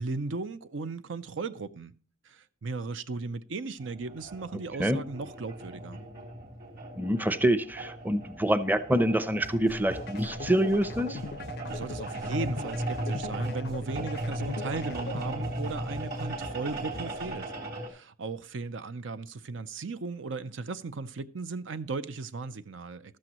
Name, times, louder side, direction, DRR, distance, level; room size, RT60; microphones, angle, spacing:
voice 1, 0.0-1.9 2.3-6.0 11.7-17.5 17.9-23.2, right 3 dB, 70° right, 0.6 m, -36 dB
sound 1, 3.8-17.9, right 1 dB, 50° right, 3.5 m, -37 dB
voice 2, 7.0-11.2, right 1 dB, 10° right, 0.7 m, -26 dB
sound 2, 9.4-17.4, left 1 dB, 85° right, 7.1 m, -48 dB
sound 3, 9.9-15.9, left 4 dB, 55° left, 0.5 m, -41 dB
14.0 x 13.0 x 3.0 m
head